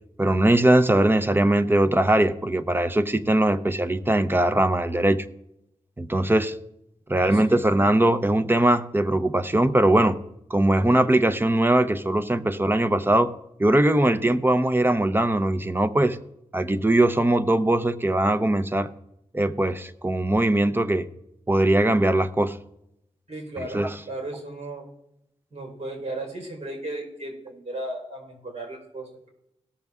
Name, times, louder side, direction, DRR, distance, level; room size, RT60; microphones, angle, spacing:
voice 1, 0.2-5.3 6.0-6.6 7.1-10.2 10.5-13.3 13.6-16.2 16.5-18.9 19.3-21.1 21.5-22.6 23.7-23.9, right 1 dB, 20° right, 11 dB, 0.6 m, -21 dB
voice 2, 7.1-7.6 23.3-24.8 25.5-29.3, right 1 dB, 55° right, 0 dB, 4.1 m, -36 dB
17.5 x 6.8 x 3.6 m, 0.81 s
wide cardioid pair, 110°, 12 cm